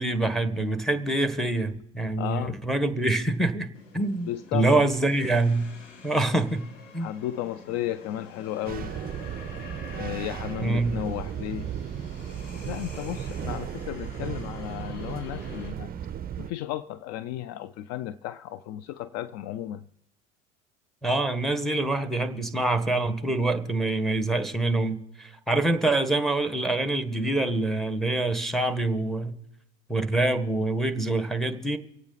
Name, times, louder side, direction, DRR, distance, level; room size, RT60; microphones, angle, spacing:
voice 1, 0.0-3.7 3.9-5.7 6.0-6.6 6.9-7.1 10.6-10.9 21.0-29.3 29.9-31.8, right 2 dB, ahead, 1.4 m, -25 dB
voice 2, 2.2-2.6 4.3-4.8 7.0-8.9 10.0-11.7 12.6-15.9 16.4-19.8, left 12 dB, 45° left, 0.5 m, -34 dB
sound 1, 3.7-15.7, left 4 dB, 85° left, 1.9 m, -47 dB
sound 2, 8.7-16.5, right 9 dB, 25° right, 0.6 m, -35 dB
25.0 x 8.6 x 4.1 m
hypercardioid pair, 75°, 36 cm